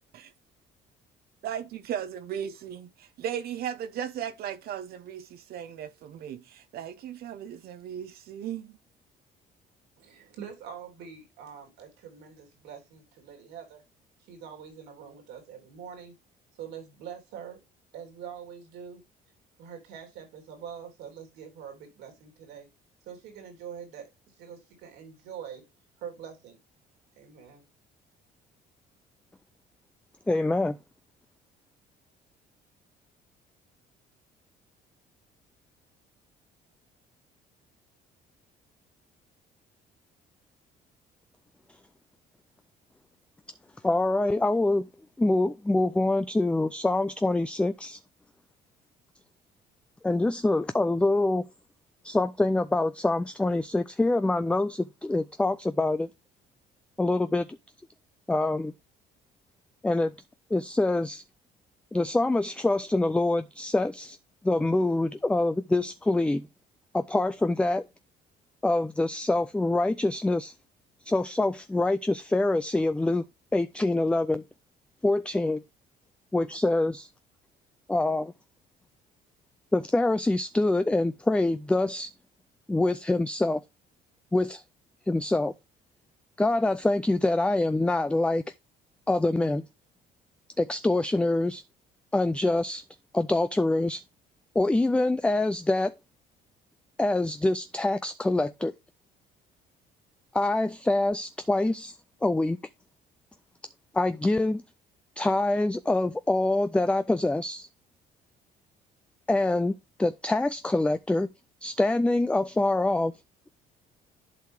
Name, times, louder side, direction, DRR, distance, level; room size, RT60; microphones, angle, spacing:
voice 1, 1.4-8.8, right 9 dB, 65° right, 0.8 m, -36 dB
voice 2, 10.0-13.8 14.2-16.1 16.5-17.6 17.9-19.0 19.6-22.7 23.0-25.6 26.0-26.6 27.2-27.6, right 8 dB, 90° right, 3.3 m, -44 dB
voice 3, 30.3-30.8 43.8-44.9 45.2-48.0 50.0-51.4 52.0-56.1 57.0-57.5 58.3-58.7 59.8-60.1 60.5-61.2 61.9-64.2 64.4-66.5 66.9-67.9 68.6-70.5 71.0-73.2 73.5-74.4 75.0-75.6 76.3-77.1 77.9-78.3 79.7-82.1 82.7-83.6 84.3-84.6 85.1-85.5 86.4-88.4 89.1-89.7 90.6-91.6 92.1-92.8 93.1-94.0 94.6-96.0 97.0-98.7 100.3-102.0 102.2-102.6 103.9-104.6 105.2-107.7 109.3-111.3 111.6-113.2, left 2 dB, 5° left, 0.3 m, -25 dB
11.5 x 4.7 x 3.3 m
cardioid pair, 110°, 17 cm